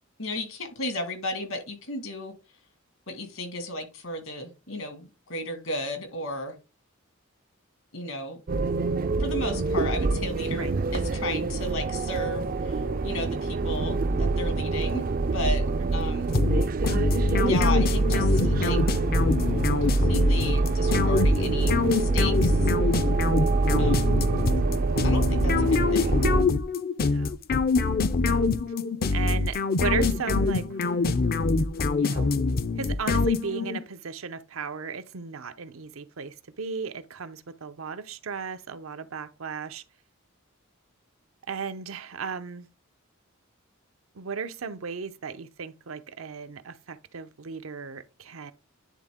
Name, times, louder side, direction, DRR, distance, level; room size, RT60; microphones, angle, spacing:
voice 1, 0.2-2.3 3.1-6.5 7.9-8.4 9.2-15.0 15.3-16.3 17.5-18.8 19.8-22.7 23.8-24.1 25.0-26.2, left 1 dB, 75° left, 1.9 m, -34 dB
sound 1, 8.5-26.4, right 3 dB, 45° right, 0.4 m, -25 dB
voice 2, 15.8-16.3 27.0-27.4 28.2-28.5 29.1-31.0 32.0-32.3 32.8-39.8 41.5-42.7 44.1-48.5, right 5 dB, 80° right, 0.7 m, -36 dB
sound 2, 16.3-33.8, left 3 dB, 45° left, 0.5 m, -24 dB
10.0 x 3.6 x 3.6 m
head